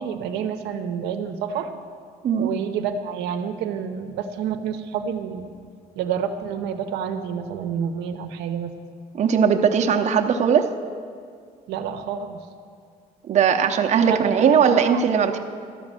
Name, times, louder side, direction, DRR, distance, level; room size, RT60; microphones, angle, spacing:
voice 1, 0.0-1.7 2.4-5.5 6.0-8.7 11.7-12.4 14.0-14.6 14.8-15.0, right 7 dB, 85° right, 5 dB, 0.7 m, -28 dB
voice 2, 9.1-10.7 13.3-15.4, right 7 dB, 45° right, 3 dB, 0.7 m, -19 dB
12.5 x 5.2 x 7.5 m, 2.2 s
cardioid pair, 110°, 17 cm